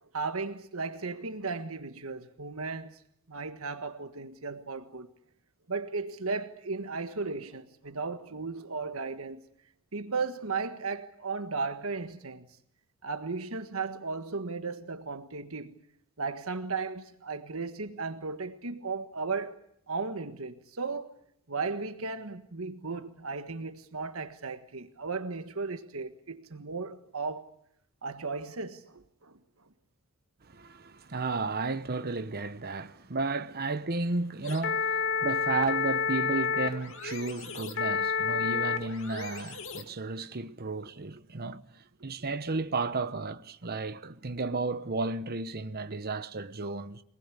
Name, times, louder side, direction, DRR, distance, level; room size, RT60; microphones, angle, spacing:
voice 1, 0.1-3.0 3.3-5.1 5.7-9.4 9.9-12.5 13.0-15.8 16.2-19.6 19.9-21.1 21.5-27.5 28.0-29.4 37.2-37.3 37.6-38.1 38.3-38.5, right 4 dB, 70° right, 1.6 m, -35 dB
voice 2, 30.5-41.6 42.0-47.0, right 3 dB, 45° right, 1.0 m, -33 dB
sound 1, 34.4-39.8, left 5 dB, 60° left, 2.5 m, -30 dB
25.5 x 19.5 x 9.9 m
head